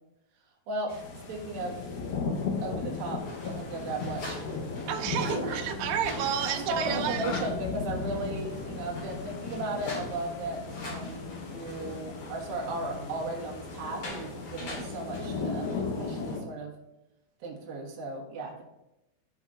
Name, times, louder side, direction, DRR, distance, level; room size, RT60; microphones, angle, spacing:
sound 1, 0.9-16.4, left 4 dB, 70° left, 2.6 m, -37 dB
voice 1, 1.3-1.9 2.6-4.6 5.2-5.6 6.4-16.8 17.4-18.6, right 2 dB, 65° right, -1 dB, 3.1 m, -36 dB
sound 2, 3.2-15.8, left 1 dB, 40° left, 2.1 m, -41 dB
voice 2, 4.9-7.3 14.6-14.9, right 9 dB, 90° right, 4 dB, 2.1 m, -31 dB
15.0 x 5.3 x 2.5 m, 0.91 s
omnidirectional pair, 5.0 m